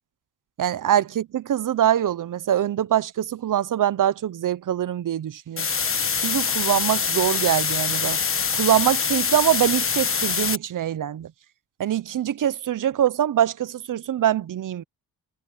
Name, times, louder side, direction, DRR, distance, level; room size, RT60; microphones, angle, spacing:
voice 1, 0.6-5.7 6.2-8.2 8.5-11.3 11.8-14.8, right 11 dB, 55° right, 0.8 m, -23 dB
sound 1, 5.6-10.6, left 6 dB, 35° left, 1.3 m, -24 dB
cardioid pair, 110°, 39 cm